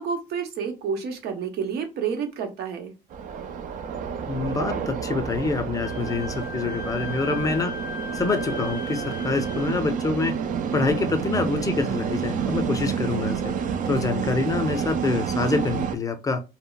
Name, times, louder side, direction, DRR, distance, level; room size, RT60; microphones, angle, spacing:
voice 1, 0.0-2.9, right 6 dB, 75° right, 5 dB, 0.8 m, -29 dB
sound 1, 3.1-16.0, right 7 dB, 50° right, 0.4 m, -29 dB
voice 2, 4.3-7.8 8.1-10.4 10.7-13.5 13.9-16.4, left 3 dB, 20° left, 6 dB, 0.5 m, -26 dB
Wind instrument woodwind instrument, 5.8-9.8, left 5 dB, 80° left, 0.4 m, -37 dB
2.1 x 2.0 x 3.8 m, 0.28 s
cardioid pair, 110°, 17 cm